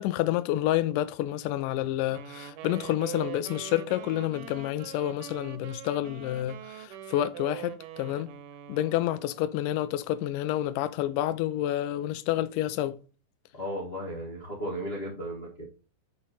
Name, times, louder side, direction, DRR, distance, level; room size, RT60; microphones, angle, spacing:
voice 1, 0.0-8.3 8.7-13.0, left 13 dB, 85° left, 2.1 m, -29 dB
Wind instrument woodwind instrument, 2.1-9.6, right 11 dB, 80° right, 2.4 m, -43 dB
voice 2, 13.5-15.7, equal, 40° left, 0.8 m, -35 dB
5.9 x 5.0 x 4.1 m
omnidirectional pair, 3.7 m